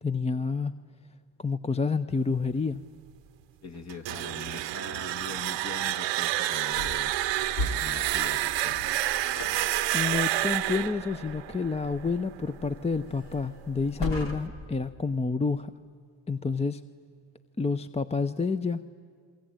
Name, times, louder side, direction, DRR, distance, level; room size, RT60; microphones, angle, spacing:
voice 1, 0.0-0.7 1.4-2.8 9.9-15.7 16.3-16.8 17.6-18.8, left 4 dB, 15° left, 12 dB, 0.7 m, -29 dB
voice 2, 3.6-7.1 7.8-8.8, left 5 dB, 40° left, 8 dB, 1.6 m, -42 dB
sound 1, 3.9-12.7, right 14 dB, 90° right, 0.9 m, -29 dB
sound 2, 6.7-14.8, left 1 dB, 75° left, 3.0 m, -39 dB
27.5 x 23.0 x 8.9 m, 2.1 s
cardioid pair, 80°, 43 cm